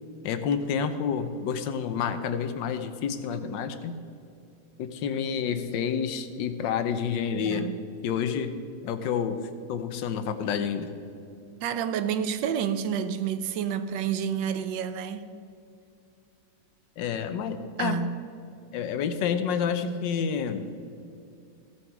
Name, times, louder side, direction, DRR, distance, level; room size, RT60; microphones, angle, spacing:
voice 1, 0.2-3.9 4.8-7.7 8.0-8.5 8.8-9.4 9.7-10.9 17.0-18.0 18.7-20.7, left 7 dB, 80° left, 1.4 m, -29 dB
voice 2, 7.3-7.8 11.6-15.2 17.8-18.2, right 8 dB, 85° right, 1.3 m, -29 dB
15.5 x 7.1 x 4.7 m
omnidirectional pair, 2.0 m